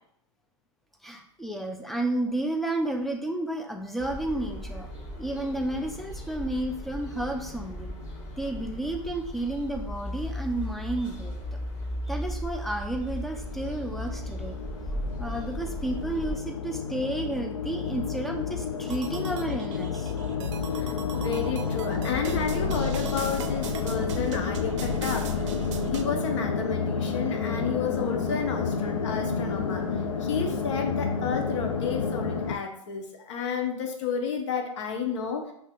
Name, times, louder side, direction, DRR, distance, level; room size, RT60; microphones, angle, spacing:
voice 1, 1.0-4.9 5.2-7.9 8.4-11.4 12.1-14.6 15.2-20.1, right 1 dB, ahead, 3 dB, 0.4 m, -31 dB
sound 1, 4.0-16.3, equal, 30° left, 1.5 m, -36 dB
sound 2, 13.4-32.6, left 5 dB, 85° left, 0.5 m, -30 dB
sound 3, 18.9-26.0, right 2 dB, 65° right, 0.5 m, -37 dB
voice 2, 20.8-25.5 25.8-29.8 30.2-35.5, left 6 dB, 65° left, 3 dB, 0.8 m, -31 dB
5.6 x 2.7 x 2.4 m, 0.73 s
hypercardioid pair, 115°, 17 cm